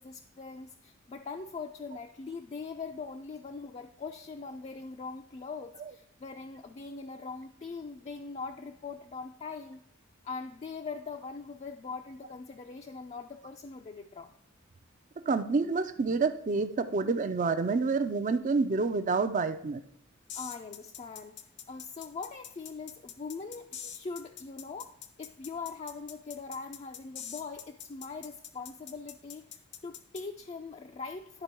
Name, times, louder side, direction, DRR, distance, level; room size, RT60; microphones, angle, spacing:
voice 1, 0.0-9.8 10.2-14.3 20.3-21.4 21.7-24.9 25.2-31.4, left 4 dB, 35° left, 4 dB, 0.4 m, -41 dB
voice 2, 15.3-19.8, right 4 dB, 40° right, 9 dB, 0.4 m, -28 dB
sound 1, 20.3-30.2, left 9 dB, 60° left, 0.7 m, -44 dB
11.0 x 4.5 x 4.4 m, 0.76 s
head